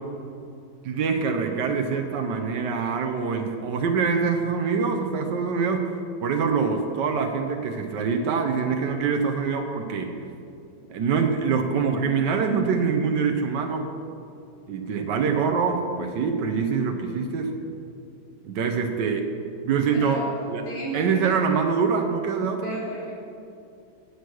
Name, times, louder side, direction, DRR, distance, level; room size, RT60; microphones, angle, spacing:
voice 1, 0.8-5.8 6.2-10.1 10.9-13.9 14.7-17.5 18.4-19.2 19.6-20.2 20.5-20.6 20.9-22.8, right 5 dB, 90° right, 4 dB, 1.5 m, -24 dB
voice 2, 19.9-20.4 20.6-21.4 22.6-23.1, right 1 dB, 70° left, -7 dB, 3.9 m, -33 dB
16.5 x 6.4 x 6.3 m, 2.6 s
omnidirectional pair, 1.8 m